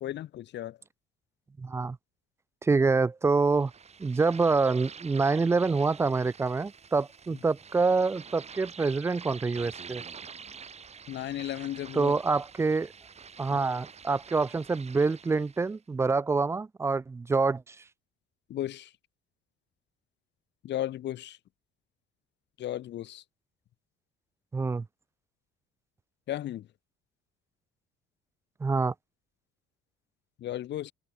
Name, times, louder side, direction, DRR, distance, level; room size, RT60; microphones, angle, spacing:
voice 1, 0.0-0.8 7.3-7.4 11.1-12.1 13.5-13.6 18.5-18.9 20.6-21.4 22.6-23.2 26.3-26.7 30.4-30.9, left 12 dB, 60° left, 1.4 m, -35 dB
voice 2, 1.6-2.0 2.6-3.7 4.0-10.0 11.9-12.9 13.4-17.8 24.5-24.9 28.6-28.9, right 4 dB, 15° right, 0.3 m, -26 dB
sound 1, 3.5-15.8, right 6 dB, 30° right, 3.1 m, -47 dB
cardioid pair, 115°, 21 cm